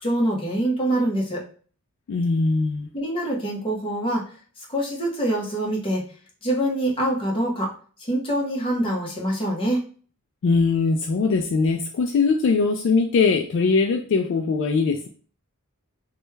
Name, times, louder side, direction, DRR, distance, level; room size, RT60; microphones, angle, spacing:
voice 1, 0.0-1.4 2.9-4.2 4.6-6.0 6.4-7.7 8.1-9.8, right 1 dB, 25° left, -2 dB, 0.9 m, -24 dB
voice 2, 2.1-2.9 10.4-15.1, left 4 dB, 60° left, 5 dB, 0.3 m, -21 dB
3.1 x 2.2 x 3.1 m, 0.42 s
head